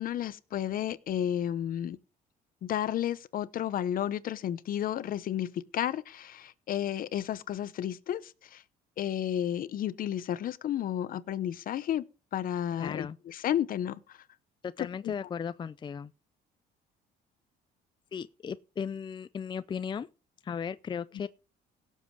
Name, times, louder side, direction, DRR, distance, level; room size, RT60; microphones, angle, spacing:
voice 1, 0.0-2.0 2.6-8.6 9.0-12.0 12.3-14.2 14.8-15.1, left 10 dB, 55° left, 0.9 m, -32 dB
voice 2, 12.7-13.2 14.6-16.1 18.1-20.1 20.4-21.3, left 7 dB, 25° left, 0.5 m, -36 dB
17.0 x 7.5 x 4.7 m
cardioid pair, 110°, 17 cm